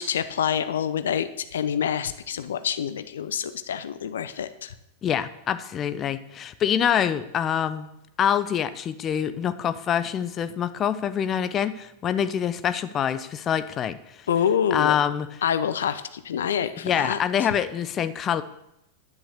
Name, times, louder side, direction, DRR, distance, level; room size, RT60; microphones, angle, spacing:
voice 1, 0.0-4.7 14.3-15.0 15.4-17.5, left 8 dB, 65° left, 12 dB, 0.7 m, -27 dB
voice 2, 5.0-7.9 8.2-14.2 14.7-15.3 16.8-18.4, left 9 dB, 30° left, 13 dB, 0.8 m, -25 dB
11.0 x 10.0 x 6.8 m, 0.84 s
figure-of-eight pair, 90°, 0 cm